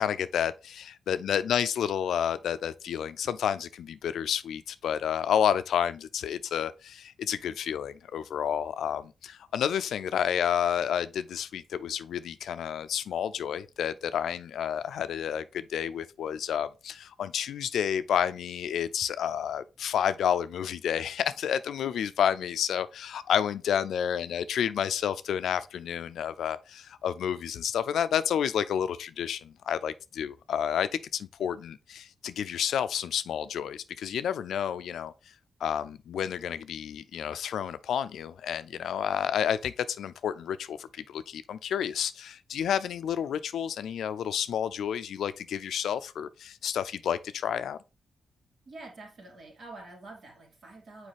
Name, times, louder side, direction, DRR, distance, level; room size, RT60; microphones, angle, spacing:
voice 1, 0.0-35.1 35.6-47.8, left 9 dB, 90° left, 0.4 m, -30 dB
voice 2, 48.7-51.1, right 2 dB, 60° right, 2.7 m, -47 dB
6.4 x 4.7 x 3.4 m
cardioid pair, 70°, 0 cm